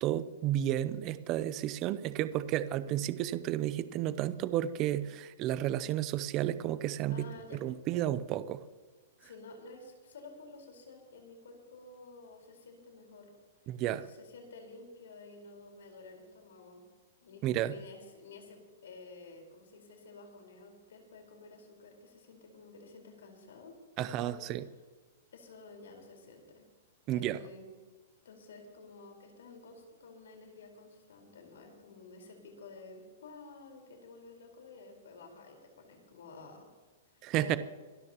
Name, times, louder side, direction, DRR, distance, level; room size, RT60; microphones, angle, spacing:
voice 1, 0.0-8.6 13.7-14.1 17.4-17.8 24.0-24.6 27.1-27.4 37.2-37.6, right 12 dB, 25° right, 14 dB, 0.5 m, -32 dB
voice 2, 7.1-7.6 9.2-13.3 14.1-16.8 17.2-24.4 25.3-26.7 27.1-27.7 28.2-36.7 37.1-37.6, left 3 dB, 85° left, 3 dB, 4.4 m, -51 dB
25.0 x 13.5 x 3.0 m, 1.4 s
hypercardioid pair, 175°, 0 cm